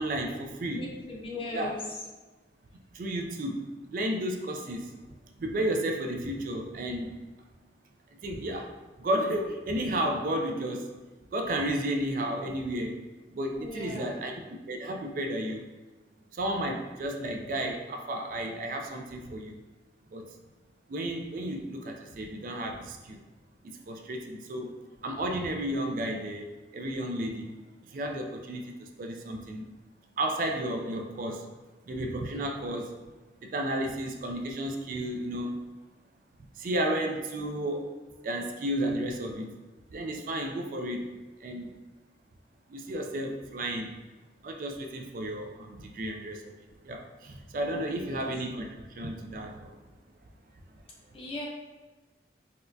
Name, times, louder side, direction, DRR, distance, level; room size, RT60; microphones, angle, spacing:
voice 1, 0.0-0.8 1.5-1.7 2.9-4.9 5.4-7.1 8.2-10.9 11.3-13.0 13.3-14.3 14.7-15.7 16.3-19.6 20.1-20.3 20.9-23.2 23.6-24.7 25.0-27.6 27.9-29.7 30.2-31.5 31.9-33.0 33.4-35.6 36.5-38.0 38.2-39.6 39.9-41.1 41.4-41.8 42.7-44.0 44.4-46.5 46.8-49.7, right 1 dB, 50° right, 3 dB, 0.3 m, -32 dB
voice 2, 0.7-1.8 13.5-14.3 48.0-48.3 51.1-51.4, left 2 dB, 30° left, -2 dB, 0.5 m, -38 dB
4.1 x 2.2 x 2.6 m, 1.2 s
head